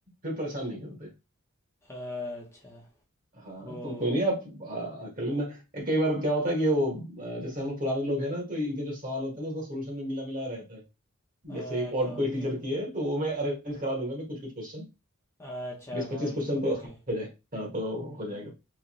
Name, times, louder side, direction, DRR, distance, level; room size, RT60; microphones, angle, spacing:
voice 1, 0.2-1.1 3.4-10.8 11.4-14.9 15.9-18.5, equal, 40° right, 1.9 m, -31 dB
voice 2, 1.9-2.8 3.7-4.1 11.5-12.2 15.4-16.4, left 1 dB, 10° left, 1.0 m, -39 dB
3.9 x 3.3 x 3.2 m
head